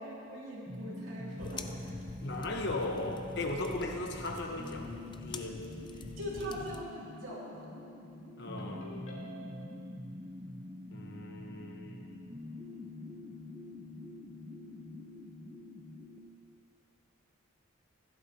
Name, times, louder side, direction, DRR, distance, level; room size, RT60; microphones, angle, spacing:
voice 1, 0.0-1.9 5.4-5.5 6.2-7.7, equal, 80° right, -6 dB, 2.7 m, -42 dB
sound 1, 0.7-16.2, left 1 dB, 25° right, 0.9 m, -45 dB
sound 2, 1.4-6.8, left 3 dB, 25° left, 0.3 m, -46 dB
voice 2, 2.2-5.6 6.5-6.6 8.4-8.9 10.9-12.3, left 2 dB, 55° left, 2 dB, 1.0 m, -38 dB
Ringtone, 8.6-9.7, right 1 dB, 75° left, 2.2 m, -49 dB
15.5 x 11.0 x 2.9 m, 2.7 s
head